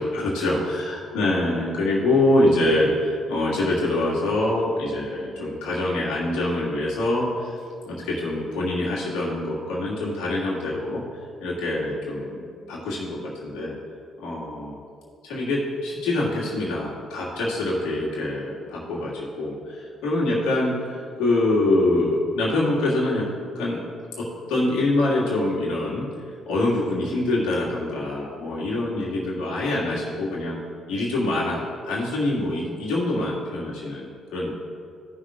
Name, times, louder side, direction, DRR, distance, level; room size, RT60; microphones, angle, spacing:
voice 1, 0.0-7.6 7.9-11.0 11.4-13.8 14.2-14.7 15.2-23.2 23.6-23.8 24.2-26.1 26.5-30.6 30.9-34.6, left 2 dB, 80° left, -5 dB, 2.2 m, -25 dB
15.5 x 6.2 x 2.6 m, 2.4 s
hypercardioid pair, 50°, 0 cm